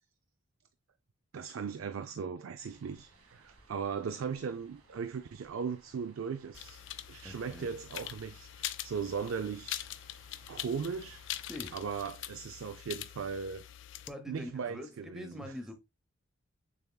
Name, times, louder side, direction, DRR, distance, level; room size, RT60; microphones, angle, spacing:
voice 1, 1.3-9.9 10.5-11.3 11.7-13.7 14.3-15.5, right 6 dB, 65° right, 0.4 m, -38 dB
sound 1, 2.6-11.8, right 3 dB, 85° right, 1.2 m, -62 dB
sound 2, 6.5-14.1, left 12 dB, 60° left, 0.4 m, -43 dB
voice 2, 7.2-7.7 11.5-11.8 14.1-15.7, left 1 dB, ahead, 0.7 m, -44 dB
6.8 x 3.5 x 2.2 m
head